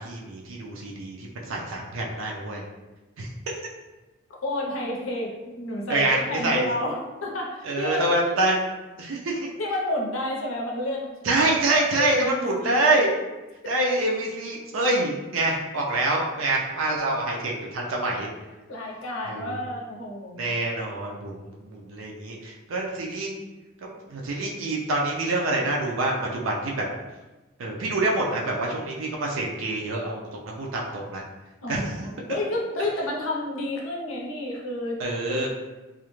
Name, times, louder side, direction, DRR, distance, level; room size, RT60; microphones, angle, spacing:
voice 1, 0.0-2.6 3.2-3.3 5.9-6.7 7.6-8.6 9.0-9.5 11.2-13.1 13.7-18.3 19.3-19.6 20.4-23.3 23.8-26.9 27.6-31.2 31.7-31.8 35.0-35.5, right 2 dB, 85° right, -2 dB, 0.5 m, -26 dB
voice 2, 4.4-8.3 9.6-12.8 13.6-13.7 18.7-20.5 31.6-35.0 35.3-35.5, left 1 dB, 85° left, -1 dB, 0.6 m, -30 dB
2.4 x 2.0 x 3.0 m, 1.1 s
head